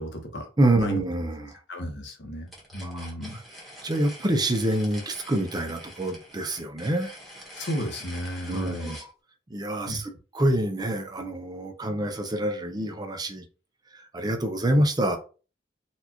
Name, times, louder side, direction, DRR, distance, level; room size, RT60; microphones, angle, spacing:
voice 1, 0.0-0.4 0.8-1.0 1.7-2.5 2.7-3.4 7.5-9.0 9.9-10.0, equal, 70° left, 1.0 m, -33 dB
voice 2, 0.6-1.5 2.8-3.1 3.3-3.4 3.8-7.1 8.5-9.0 9.5-13.4 13.9-15.2, right 1 dB, 20° right, 0.5 m, -26 dB
sound 1, 2.5-9.1, equal, ahead, 1.2 m, -45 dB
4.2 x 2.4 x 2.9 m
head